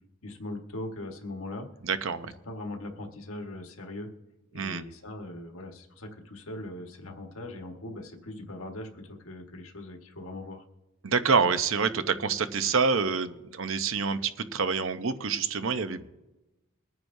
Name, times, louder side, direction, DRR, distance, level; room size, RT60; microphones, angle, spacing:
voice 1, 0.2-1.7 2.2-4.1 4.5-10.6, left 1 dB, 75° left, 3 dB, 1.5 m, -40 dB
voice 2, 1.8-2.3 4.5-4.8 11.0-16.1, right 5 dB, 65° right, 10 dB, 0.7 m, -27 dB
23.0 x 9.4 x 2.7 m, 1.0 s
head